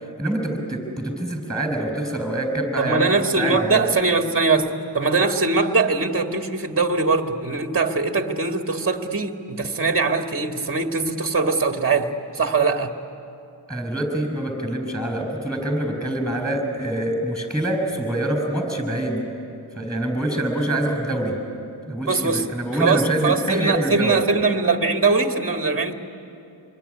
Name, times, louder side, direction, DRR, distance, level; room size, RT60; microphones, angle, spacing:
voice 1, 0.2-3.1 3.4-3.9 13.7-19.3 19.7-21.4 21.9-24.2, right 1 dB, ahead, 4 dB, 6.7 m, -25 dB
voice 2, 2.8-12.9 22.1-22.5 22.8-25.9, right 4 dB, 25° right, 5 dB, 1.9 m, -21 dB
27.0 x 22.0 x 9.8 m, 2.7 s
cardioid pair, 65°, 47 cm